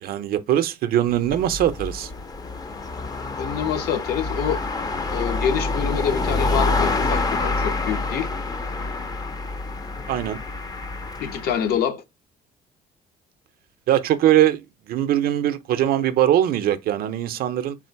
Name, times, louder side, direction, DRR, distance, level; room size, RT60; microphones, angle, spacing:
voice 1, 0.0-2.1 10.1-10.4 13.9-14.6 14.9-17.8, right 12 dB, 65° right, 0.4 m, -21 dB
sound 1, 1.1-11.7, left 3 dB, 25° left, 0.4 m, -27 dB
voice 2, 3.4-4.6 5.1-8.3 11.2-12.0, left 8 dB, 65° left, 0.7 m, -26 dB
3.6 x 2.4 x 4.4 m
cardioid pair, 110°, 17 cm